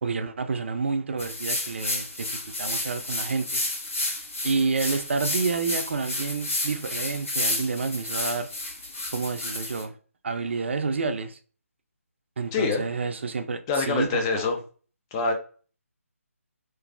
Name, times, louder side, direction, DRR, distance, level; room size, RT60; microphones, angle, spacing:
voice 1, 0.0-3.6 4.4-8.5 9.1-10.0 10.2-11.4 12.4-14.5, right 4 dB, 50° right, 0.4 m, -29 dB
sound 1, 1.2-9.8, left 2 dB, 60° left, 1.4 m, -31 dB
voice 2, 12.5-12.8 13.7-14.6 15.1-15.3, left 4 dB, 15° left, 0.4 m, -25 dB
3.0 x 2.5 x 2.4 m
figure-of-eight pair, 150°, 8 cm